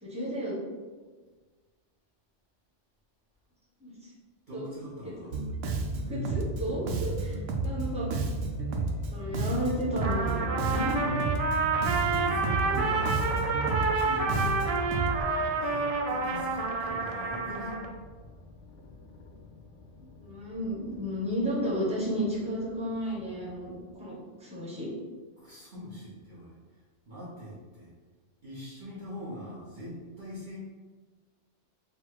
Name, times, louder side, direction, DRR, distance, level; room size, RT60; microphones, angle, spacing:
voice 1, 0.0-0.6 3.8-4.1 4.5-4.6 5.9-8.1 9.1-11.0 20.2-23.7 24.0-24.9, equal, 5° right, -7 dB, 1.2 m, -33 dB
voice 2, 4.5-5.3 11.8-13.2 13.6-14.8 15.4-17.8 25.4-26.5 27.1-27.9 28.4-30.6, equal, 45° right, -9 dB, 1.1 m, -42 dB
Bass guitar, 5.3-15.2, right 3 dB, 85° right, 0.9 m, -31 dB
sound 1, 7.6-23.9, left 3 dB, 85° left, 1.0 m, -46 dB
Trumpet, 10.0-17.9, right 4 dB, 70° right, 0.3 m, -29 dB
4.1 x 2.3 x 4.5 m, 1.4 s
omnidirectional pair, 1.2 m